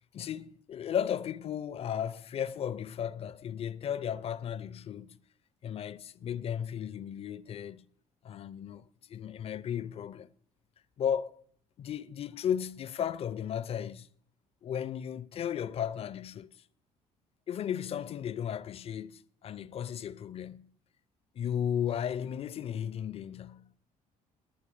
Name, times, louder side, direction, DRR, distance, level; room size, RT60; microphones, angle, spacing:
voice 1, 0.1-5.2 5.6-7.9 8.2-8.8 9.1-10.3 11.0-11.4 11.8-14.1 14.6-16.5 17.5-20.7 21.4-23.7, left 9 dB, 30° left, 0.4 m, -35 dB
21.5 x 9.4 x 3.2 m
figure-of-eight pair, 50°, 19 cm